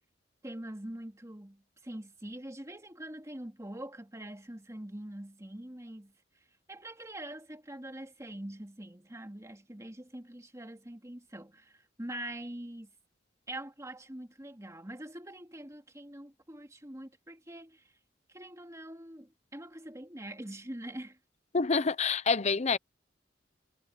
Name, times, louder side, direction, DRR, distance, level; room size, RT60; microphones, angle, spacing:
voice 1, 0.4-12.9 13.5-18.0 18.3-21.2, right 1 dB, 20° right, 2.4 m, -44 dB
voice 2, 21.5-22.8, left 4 dB, 40° left, 0.7 m, -27 dB
head